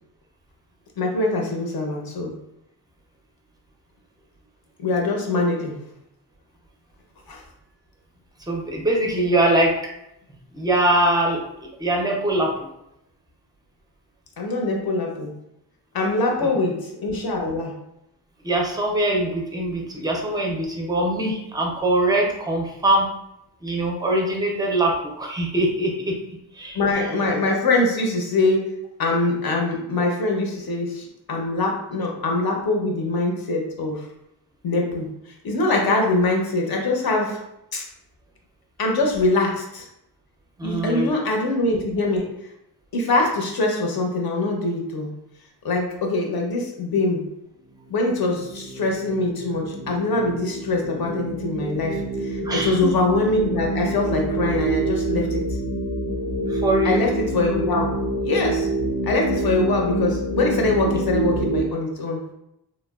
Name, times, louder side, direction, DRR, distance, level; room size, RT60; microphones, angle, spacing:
voice 1, 1.0-2.3 4.8-5.8 7.3-7.4 14.4-15.3 15.9-17.7 26.7-28.7 29.0-34.0 34.6-35.1 35.4-37.4 37.7-37.8 38.8-39.9 40.6-42.3 42.9-45.1 45.6-47.2 47.9-55.6 56.8-57.9 58.2-58.7 59.0-62.2, left 2 dB, 60° left, 1 dB, 0.7 m, -23 dB
voice 2, 8.5-9.8 10.5-11.4 11.8-12.5 18.4-23.1 23.6-26.2 26.6-26.8 40.6-41.3 52.4-52.8 56.5-57.0, right 1 dB, 10° right, -1 dB, 0.4 m, -22 dB
sound 1, 47.8-61.6, right 2 dB, 90° left, 1.0 m, -27 dB
3.0 x 2.2 x 2.2 m, 0.82 s
wide cardioid pair, 125°, 42 cm